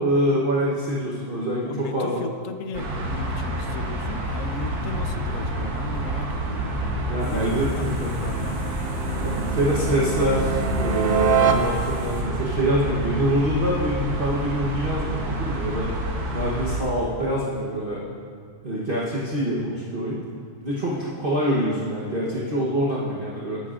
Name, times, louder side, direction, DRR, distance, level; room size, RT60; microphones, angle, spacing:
voice 1, 0.0-2.2 6.7-8.1 9.1-15.9 16.3-18.0 18.6-20.2 20.6-23.6, equal, 40° right, -6 dB, 1.1 m, -25 dB
voice 2, 1.7-8.6 20.9-21.2, left 5 dB, 65° left, 8 dB, 0.9 m, -36 dB
sound 1, 2.7-16.8, right 1 dB, 85° right, 1.7 m, -28 dB
sound 2, 5.8-12.3, right 6 dB, 60° right, 0.7 m, -28 dB
sound 3, 7.2-12.2, equal, 45° left, 2.1 m, -41 dB
13.0 x 9.8 x 2.5 m, 2.2 s
omnidirectional pair, 1.6 m